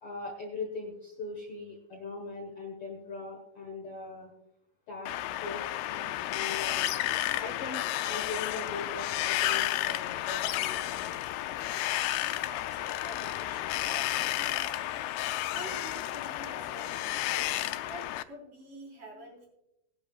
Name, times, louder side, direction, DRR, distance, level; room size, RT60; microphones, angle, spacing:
voice 1, 0.0-4.3 4.9-5.1 5.4-6.9 7.4-11.2, left 3 dB, 55° left, 1 dB, 1.6 m, -40 dB
Wind, 5.1-18.2, left 14 dB, 90° left, 2.5 m, -32 dB
voice 2, 12.5-14.9 15.5-17.5 17.9-19.5, right 1 dB, 60° right, -2 dB, 5.6 m, -47 dB
19.0 x 10.5 x 2.4 m, 0.86 s
omnidirectional pair, 4.4 m